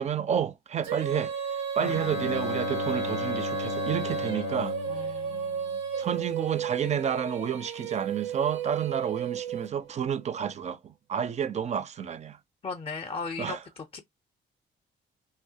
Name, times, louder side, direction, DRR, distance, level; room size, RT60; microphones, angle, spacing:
voice 1, 0.0-1.3 1.8-4.8 6.0-12.4 13.4-13.6, right 8 dB, 35° right, 0.4 m, -30 dB
Female singing, 0.8-10.0, right 7 dB, 85° right, 0.6 m, -33 dB
Bowed string instrument, 1.8-6.2, left 12 dB, 85° left, 0.5 m, -36 dB
voice 2, 4.9-5.8 12.6-14.0, left 4 dB, 30° left, 0.4 m, -37 dB
2.2 x 2.1 x 2.7 m
cardioid pair, 90°, 20 cm